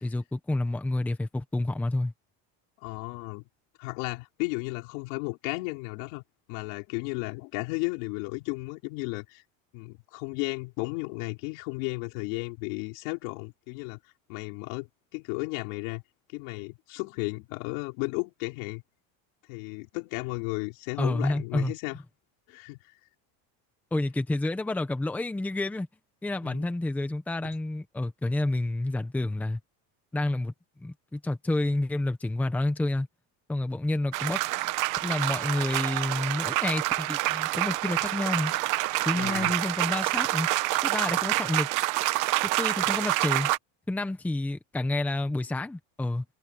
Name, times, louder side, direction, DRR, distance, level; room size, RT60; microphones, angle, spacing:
voice 1, 0.0-2.1 21.0-21.7 23.9-25.9 26.2-29.6 30.1-30.5 30.8-33.1 33.5-34.4 35.0-38.5 39.1-40.5 40.8-41.7 42.6-43.5 43.9-46.2, left 2 dB, 5° left, 1.0 m, -29 dB
voice 2, 2.8-3.4 3.8-6.2 6.5-9.4 9.7-14.0 14.3-16.0 16.3-18.8 19.5-22.0 22.5-22.8 26.4-26.7 39.0-39.5, left 28 dB, 75° left, 5.1 m, -34 dB
sound 1, 34.1-43.6, right 19 dB, 50° right, 1.1 m, -27 dB
cardioid pair, 175°, 39 cm